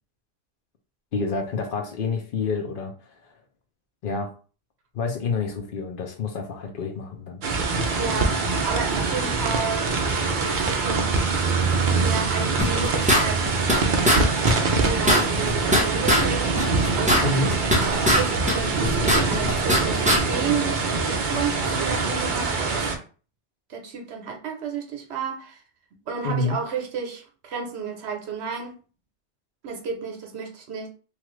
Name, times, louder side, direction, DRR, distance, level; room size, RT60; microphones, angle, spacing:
voice 1, 1.1-2.9 4.0-4.3 4.9-7.4 17.2-17.5 26.2-26.6, left 3 dB, 55° left, 0.9 m, -27 dB
sound 1, 7.4-23.0, right 4 dB, 55° right, 0.6 m, -24 dB
voice 2, 8.0-11.4 11.8-13.4 13.7-14.3 14.7-17.3 17.8-22.9 23.7-25.6 26.1-28.8 29.6-30.9, right 6 dB, 70° right, 1.0 m, -32 dB
sound 2, 12.6-13.8 14.1-14.2 14.5-14.6 14.8-16.2 16.6-18.2 18.5-19.8 20.1-20.2, equal, 10° right, 0.5 m, -20 dB
3.0 x 2.4 x 3.1 m
omnidirectional pair, 1.2 m